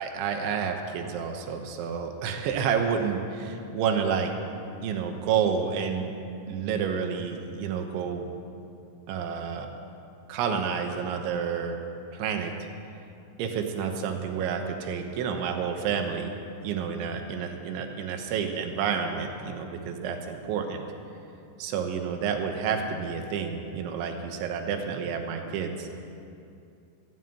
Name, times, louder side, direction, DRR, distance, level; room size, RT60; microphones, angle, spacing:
voice 1, 0.0-4.3 4.8-6.1 6.5-8.3 9.1-9.7 10.3-11.8 12.1-12.5 13.4-16.3 16.6-20.8 21.6-25.9, right 6 dB, 75° right, 4 dB, 3.2 m, -29 dB
15.0 x 9.4 x 8.9 m, 2.6 s
omnidirectional pair, 5.9 m